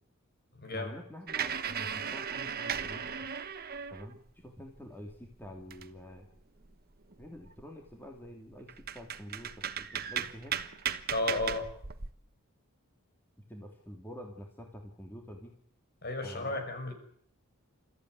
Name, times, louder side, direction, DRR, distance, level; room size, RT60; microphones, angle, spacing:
voice 1, 0.7-3.1 3.9-6.3 7.2-10.5 13.5-15.5 16.2-16.6, equal, 10° left, 1 dB, 2.9 m, -47 dB
sound 1, 1.3-4.3 4.7-6.2 6.6-6.7 7.1-7.6 8.3-8.4 8.7-12.1, right 8 dB, 45° right, 1.2 m, -37 dB
voice 2, 11.1-11.7 16.0-16.9, left 2 dB, 45° left, 6 dB, 6.4 m, -33 dB
29.5 x 14.5 x 9.5 m, 0.65 s
head